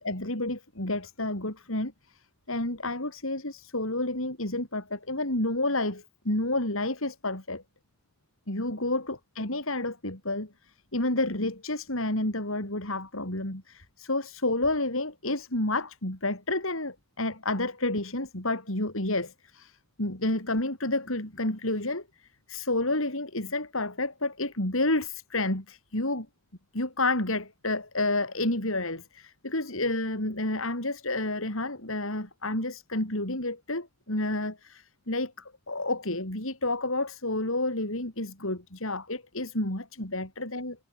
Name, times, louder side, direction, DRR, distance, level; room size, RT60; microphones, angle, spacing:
voice 1, 0.0-2.2 2.5-7.6 8.5-26.3 26.7-40.8, left 2 dB, 70° left, 5.0 m, -30 dB
head